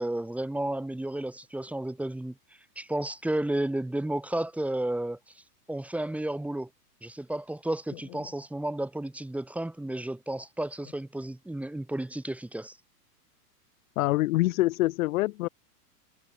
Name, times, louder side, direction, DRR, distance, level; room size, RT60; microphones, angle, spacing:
voice 1, 0.0-2.3 2.8-5.4 5.7-6.7 7.0-12.8, right 1 dB, 5° right, 3.6 m, -32 dB
voice 2, 14.0-15.5, left 18 dB, 55° left, 1.1 m, -25 dB
supercardioid pair, 150°, 49 cm